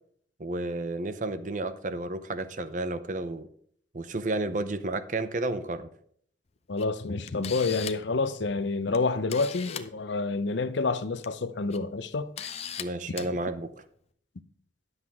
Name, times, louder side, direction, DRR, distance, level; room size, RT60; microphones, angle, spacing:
voice 1, 0.4-3.5 3.9-5.9 12.8-13.7, right 2 dB, 45° right, 0.6 m, -31 dB
voice 2, 6.7-12.5, left 3 dB, 75° left, 0.6 m, -28 dB
Camera, 6.8-6.9 7.3-8.1 8.9-9.0 9.3-9.9 11.0-11.3 11.7-11.8 12.4-12.8 13.2-13.3, left 8 dB, 35° left, 0.6 m, -37 dB
11.0 x 8.0 x 3.6 m
head